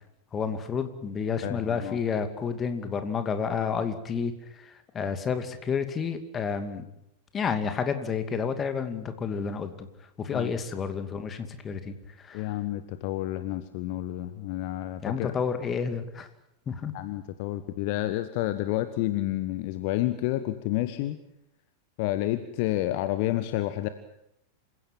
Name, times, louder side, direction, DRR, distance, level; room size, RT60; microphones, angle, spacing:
voice 1, 0.3-6.8 7.3-9.9 10.2-12.5 15.0-16.3 16.7-16.9, left 6 dB, 25° left, 9 dB, 2.5 m, -30 dB
voice 2, 1.4-2.0 10.3-10.6 12.3-15.3 16.9-21.2 22.0-23.9, left 15 dB, 45° left, 11 dB, 1.3 m, -30 dB
27.5 x 16.5 x 9.1 m, 0.79 s
figure-of-eight pair, 90°, 0 cm